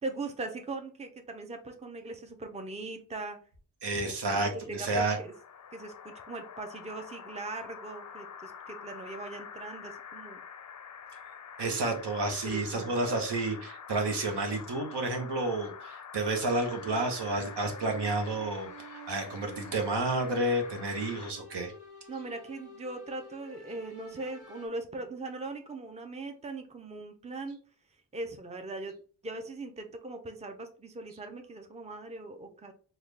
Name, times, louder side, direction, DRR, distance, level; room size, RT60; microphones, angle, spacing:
voice 1, 0.0-3.4 3.9-5.3 5.7-10.4 12.4-13.2 22.1-27.6 28.1-29.0 29.2-32.7, right 2 dB, 15° right, 6 dB, 0.6 m, -40 dB
voice 2, 3.8-5.2 11.6-21.7, right 2 dB, 70° right, 4 dB, 1.0 m, -30 dB
sound 1, 5.0-21.3, left 7 dB, 45° left, 0.5 m, -47 dB
sound 2, 16.4-24.7, right 3 dB, 45° right, 1.3 m, -50 dB
3.7 x 2.3 x 3.2 m, 0.40 s
cardioid pair, 65°, 42 cm